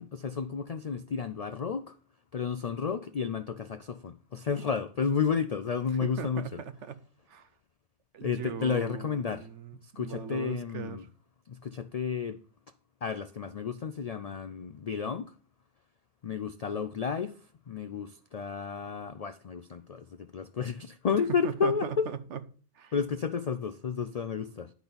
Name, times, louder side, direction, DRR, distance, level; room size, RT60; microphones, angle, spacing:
voice 1, 0.0-2.0 2.3-6.6 8.2-9.5 9.8-11.1 11.5-12.4 13.0-15.3 16.2-17.4 17.7-22.1 22.9-24.7, left 6 dB, 65° left, 0.3 m, -32 dB
voice 2, 6.0-7.0 7.3-7.5 8.1-11.0 21.4-22.4 22.8-22.9, right 7 dB, 75° right, 1.1 m, -39 dB
10.5 x 4.1 x 6.9 m
omnidirectional pair, 1.2 m